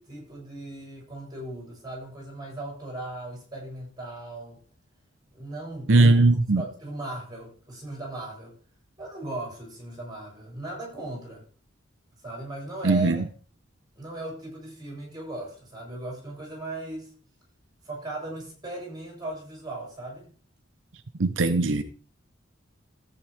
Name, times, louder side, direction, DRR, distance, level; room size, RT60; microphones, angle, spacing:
voice 1, 0.0-4.6 5.3-8.5 9.0-11.4 12.2-13.3 14.0-17.1 17.8-20.3, right 2 dB, 20° right, 7.4 m, -37 dB
voice 2, 5.9-6.6 12.8-13.2 21.2-21.8, right 3 dB, 80° right, 0.7 m, -19 dB
14.0 x 9.0 x 3.6 m
head